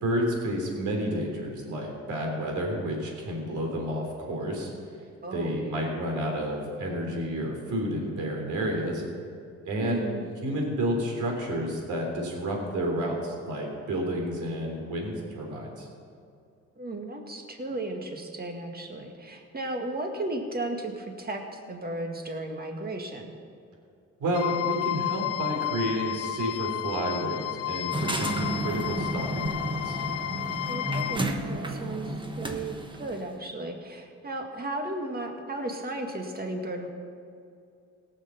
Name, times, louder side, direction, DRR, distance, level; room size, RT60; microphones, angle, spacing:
voice 1, 0.0-4.7 5.3-9.0 9.7-10.0 10.4-15.9 24.2-30.0, equal, 75° right, 0 dB, 3.5 m, -30 dB
voice 2, 5.2-5.5 9.8-10.3 16.8-23.3 30.7-36.9, right 2 dB, 30° right, 3 dB, 2.0 m, -35 dB
sound 1, 24.3-31.2, left 13 dB, 55° left, 0.5 m, -32 dB
sound 2, 27.9-33.2, right 1 dB, 15° right, 1.2 m, -32 dB
17.5 x 6.6 x 7.1 m, 2.4 s
cardioid pair, 90°, 30 cm